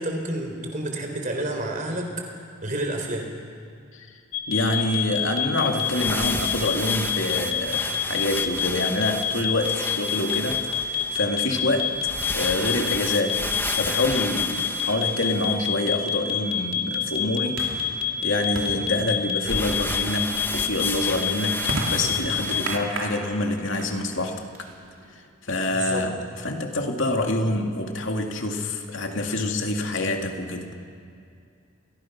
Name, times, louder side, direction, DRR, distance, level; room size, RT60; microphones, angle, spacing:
voice 1, 0.0-2.3 2.6-3.3 25.7-26.0, right 1 dB, 40° right, 3 dB, 3.9 m, -29 dB
sound 1, 4.3-22.6, left 10 dB, 90° left, 2.9 m, -26 dB
voice 2, 4.5-11.9 12.3-17.6 18.2-24.4 25.4-30.7, left 2 dB, 70° left, 3 dB, 2.5 m, -26 dB
sound 2, 5.6-15.7 19.4-22.8, left 2 dB, 10° left, 1.1 m, -33 dB
sound 3, 15.7-25.2, right 2 dB, 75° right, 3.0 m, -37 dB
30.0 x 23.0 x 6.1 m, 2.3 s
head